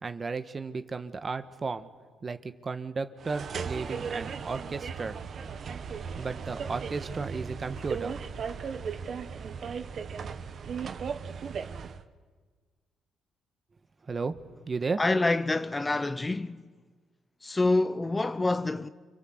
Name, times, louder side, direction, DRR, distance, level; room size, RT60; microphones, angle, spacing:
voice 1, 0.0-1.9 2.2-5.2 6.1-8.2 14.0-15.0, right 4 dB, 35° right, 1.6 m, -34 dB
sound 1, 3.2-12.0, right 6 dB, 55° right, 1.3 m, -36 dB
voice 2, 15.0-16.6 17.4-18.9, left 2 dB, 20° left, 0.7 m, -27 dB
29.0 x 25.0 x 8.2 m
cardioid pair, 90°, 0 cm